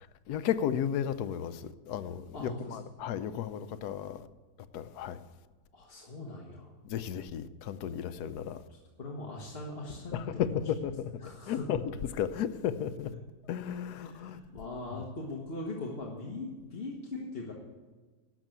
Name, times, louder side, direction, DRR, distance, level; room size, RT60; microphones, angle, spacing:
voice 1, 0.3-4.3 4.7-5.2 6.8-8.6 10.1-11.1 11.5-13.1 13.5-14.4 14.9-15.0, left 9 dB, 85° left, 1.2 m, -34 dB
voice 2, 2.3-3.0 5.7-6.7 8.7-10.5 11.2-11.8 13.9-17.5, left 2 dB, 40° left, 1.5 m, -40 dB
12.0 x 6.5 x 9.2 m
omnidirectional pair, 1.7 m